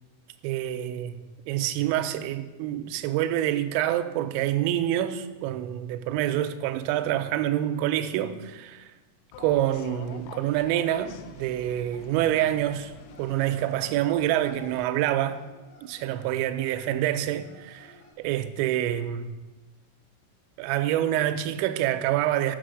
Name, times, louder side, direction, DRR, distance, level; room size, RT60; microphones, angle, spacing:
voice 1, 0.4-1.2 1.5-8.9 9.4-12.9 13.2-15.4 15.8-19.3 20.6-22.6, right 12 dB, 85° right, 2.7 m, -27 dB
sound 1, 9.3-14.9, left 7 dB, 85° left, 2.3 m, -47 dB
sound 2, 12.9-18.1, left 2 dB, 50° left, 1.9 m, -54 dB
9.0 x 6.0 x 6.3 m
omnidirectional pair, 5.3 m